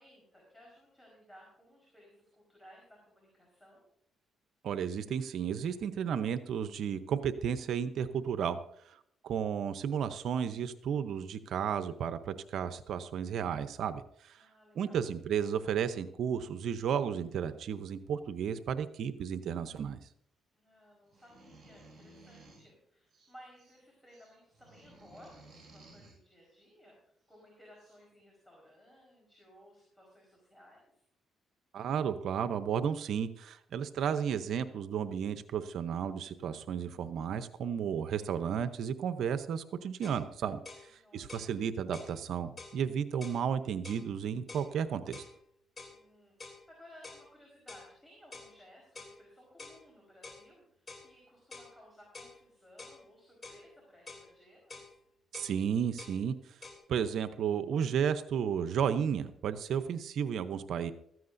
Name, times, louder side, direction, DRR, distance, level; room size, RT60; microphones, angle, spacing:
voice 1, 0.0-3.8 14.4-15.1 20.5-31.0 40.9-41.5 45.9-54.9, equal, 10° left, -2 dB, 4.5 m, -58 dB
voice 2, 4.6-8.6 8.8-9.0 9.2-14.5 14.7-20.0 31.7-45.2 55.3-56.6 56.9-60.9, right 8 dB, 70° right, 11 dB, 0.7 m, -33 dB
sound 1, 21.0-22.7 23.1-23.8 24.1-26.2 27.3-27.4 27.8-28.0, right 2 dB, 35° right, 6.0 m, -57 dB
sound 2, 40.0-40.2 40.6-40.9 41.3-41.5 41.9-42.1 42.6-42.8 43.2-43.4 43.8-44.1 44.5-44.7 45.1-45.3 45.8-46.0 46.4-46.6 47.0-47.2 47.7-47.9 48.3-48.5 48.9-49.2 49.6-49.8 50.2-50.4 50.9-51.1 51.5-51.7 52.1-52.4 52.8-53.0 53.4-53.6 54.1-54.3 54.7-54.9 55.3-55.5 56.0-56.2 56.6-56.8, left 3 dB, 35° left, 3.0 m, -48 dB
15.5 x 14.0 x 2.6 m, 0.69 s
cardioid pair, 90°, 0 cm